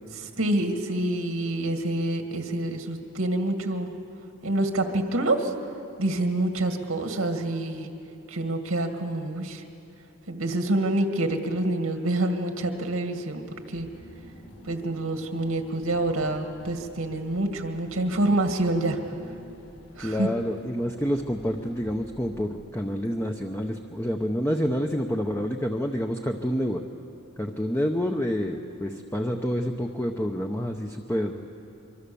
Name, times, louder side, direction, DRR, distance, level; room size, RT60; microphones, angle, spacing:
voice 1, 0.2-3.9 4.4-5.5 6.0-7.9 8.3-9.6 10.3-13.4 13.7-13.9 14.7-19.0 20.0-20.3, right 1 dB, 90° right, 5 dB, 2.0 m, -27 dB
Car / Engine, 13.7-22.9, equal, 60° left, 4.6 m, -49 dB
voice 2, 20.0-26.8 27.4-31.4, equal, 10° left, 3 dB, 0.8 m, -28 dB
24.5 x 24.5 x 7.0 m, 2.7 s
head